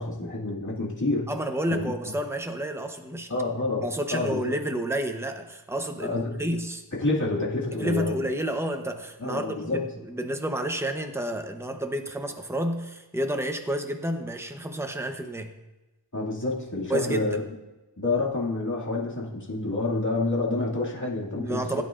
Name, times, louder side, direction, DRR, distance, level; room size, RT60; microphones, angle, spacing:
voice 1, 0.0-1.3 1.7-1.9 3.3-4.5 6.0-6.4 6.9-8.3 9.2-9.8 16.1-17.4 18.0-21.8, left 2 dB, 40° left, -5 dB, 2.4 m, -28 dB
voice 2, 1.3-3.3 3.8-6.8 7.7-15.5 16.9-17.4 21.3-21.8, right 1 dB, 5° right, 5 dB, 0.9 m, -30 dB
16.5 x 8.8 x 2.5 m, 1.1 s
wide cardioid pair, 60°, 46 cm